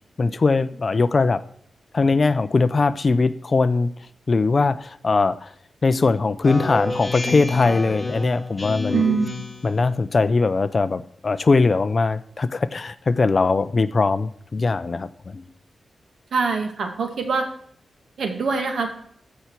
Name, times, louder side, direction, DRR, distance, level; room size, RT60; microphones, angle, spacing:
voice 1, 0.2-1.4 1.9-3.9 4.3-5.5 5.8-9.0 9.6-15.5, left 3 dB, 35° left, 14 dB, 0.5 m, -20 dB
Speech synthesizer, 6.4-9.8, left 3 dB, 15° left, 2.8 m, -29 dB
voice 2, 8.9-9.4 16.3-17.4 18.2-18.9, right 5 dB, 70° right, 5 dB, 2.0 m, -23 dB
15.0 x 5.8 x 4.5 m, 0.67 s
wide cardioid pair, 145°, 0 cm